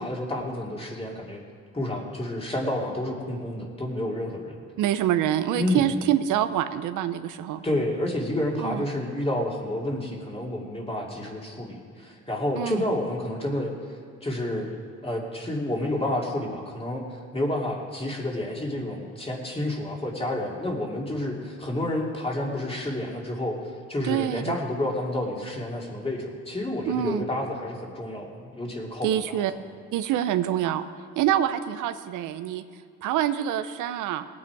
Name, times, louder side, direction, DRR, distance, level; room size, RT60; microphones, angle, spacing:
voice 1, 0.0-1.4 1.7-4.5 5.5-5.9 7.6-13.7 14.2-14.7 15.0-17.0 17.3-23.6 23.9-29.4, left 1 dB, 20° left, -1 dB, 2.6 m, -29 dB
voice 2, 4.8-7.6 8.6-8.9 12.6-12.8 24.0-24.6 26.9-27.3 29.0-29.5 29.9-30.8 31.2-32.6 33.0-34.2, right 11 dB, 90° right, 10 dB, 0.7 m, -26 dB
19.0 x 8.6 x 4.7 m, 2.2 s
cardioid pair, 90°, 30 cm